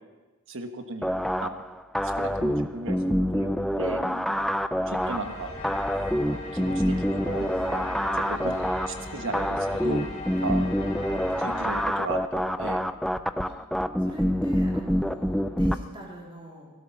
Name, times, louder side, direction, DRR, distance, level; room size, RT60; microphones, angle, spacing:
voice 1, 0.5-1.1 1.4-1.6 2.2-4.0 4.9-5.5 6.2-8.5 8.9-10.0 10.4-10.6 11.4-12.8 14.0-14.1, right 3 dB, 60° right, 6 dB, 1.3 m, -36 dB
sound 1, 1.0-15.8, equal, ahead, 0.4 m, -27 dB
sound 2, 5.0-11.8, left 2 dB, 30° left, 3.4 m, -38 dB
voice 2, 14.0-16.7, left 1 dB, 25° right, -3 dB, 3.5 m, -42 dB
17.0 x 12.0 x 5.8 m, 1.2 s
head